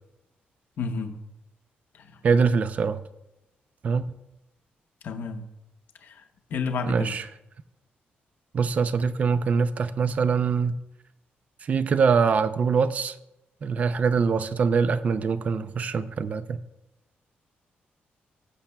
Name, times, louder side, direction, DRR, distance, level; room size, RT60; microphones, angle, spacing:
voice 1, 0.8-1.2 5.0-5.4 6.0-6.1 6.5-7.2, left 5 dB, 65° left, 0.7 m, -30 dB
voice 2, 2.2-3.0 3.8-4.0 6.9-7.3 8.5-10.8 11.7-13.1 13.6-16.6, right 5 dB, 45° right, 0.4 m, -23 dB
16.0 x 7.1 x 2.2 m
wide cardioid pair, 150°, 4 cm